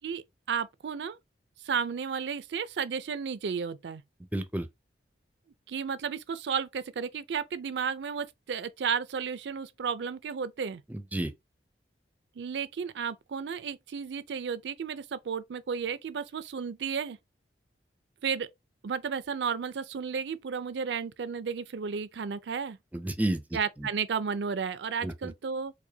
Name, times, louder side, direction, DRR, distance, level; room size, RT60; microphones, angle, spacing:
voice 1, 0.0-1.2 1.6-4.0 5.7-10.8 12.4-17.2 18.2-18.5 18.8-22.8 23.5-25.7, right 6 dB, 75° right, 0.4 m, -33 dB
voice 2, 4.2-4.7 10.9-11.3 22.9-23.9 25.0-25.3, right 1 dB, 10° right, 0.4 m, -32 dB
4.7 x 2.1 x 2.8 m
head